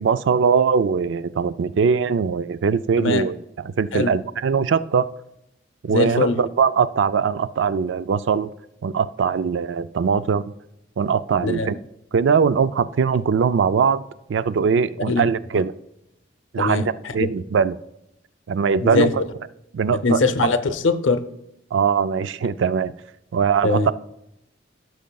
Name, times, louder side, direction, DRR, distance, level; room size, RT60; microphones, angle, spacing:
voice 1, 0.0-5.1 5.8-8.5 8.8-10.5 11.0-11.8 12.1-14.0 14.3-15.7 16.5-17.8 18.5-19.2 19.7-20.2 21.7-22.9 23.3-23.8, right 6 dB, 75° right, 15 dB, 0.4 m, -21 dB
voice 2, 5.9-6.4 11.4-11.7 15.1-15.2 16.6-17.3 18.8-19.1 19.9-21.3 23.6-23.9, left 3 dB, 85° left, 10 dB, 0.7 m, -22 dB
15.5 x 6.3 x 2.3 m, 0.84 s
head